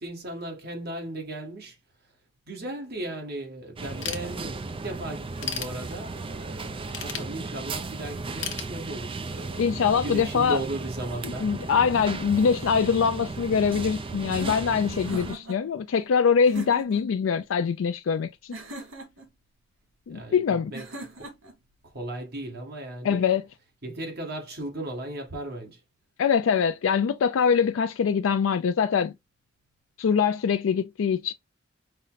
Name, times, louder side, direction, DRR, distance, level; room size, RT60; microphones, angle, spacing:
voice 1, 0.0-1.7 2.5-11.6 20.1-20.9 21.9-23.2 23.8-25.8, right 1 dB, 55° right, 1.6 m, -36 dB
sound 1, 3.8-15.3, right 3 dB, 25° right, 0.4 m, -35 dB
Ratchet pawl / Tools, 4.0-4.8 5.2-6.3 6.9-7.9 8.4-9.4, left 7 dB, 65° left, 0.9 m, -35 dB
voice 2, 9.6-10.6 11.2-18.3 20.1-20.7 23.0-23.4 26.2-29.1 30.0-31.3, left 6 dB, 80° left, 0.4 m, -23 dB
sound 2, 14.3-15.6 16.4-17.1 18.5-19.3 20.7-21.5, right 2 dB, 85° right, 1.7 m, -39 dB
5.4 x 2.1 x 3.9 m
head